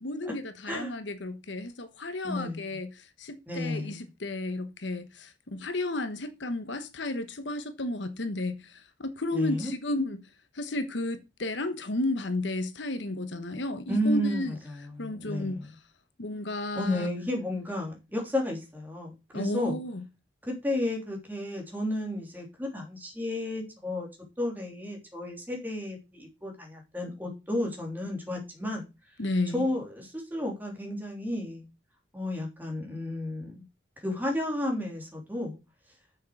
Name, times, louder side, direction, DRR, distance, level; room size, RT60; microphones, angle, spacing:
voice 1, 0.0-10.2 10.5-14.6 15.0-15.6 16.2-17.1 19.3-20.0 29.2-29.7, left 2 dB, 75° left, 1.1 m, -33 dB
voice 2, 2.2-2.7 3.5-4.0 9.3-9.7 13.9-15.7 16.7-19.8 20.4-24.1 24.4-28.8 29.5-31.6 32.1-33.6 34.0-35.6, left 1 dB, 10° right, 3.0 m, -32 dB
7.3 x 6.5 x 6.4 m
head